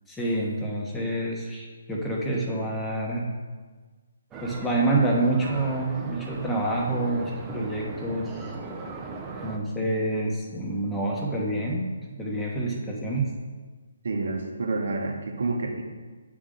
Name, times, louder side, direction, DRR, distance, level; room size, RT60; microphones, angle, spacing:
voice 1, 0.1-3.3 4.4-8.5 9.4-11.9 12.2-13.3, right 2 dB, 10° left, -3 dB, 1.0 m, -27 dB
sound 1, 4.3-9.6, right 3 dB, 15° right, 0.5 m, -38 dB
voice 2, 14.0-15.8, right 3 dB, 60° right, 2 dB, 0.9 m, -28 dB
7.8 x 3.6 x 3.7 m, 1.4 s
figure-of-eight pair, 140°, 0 cm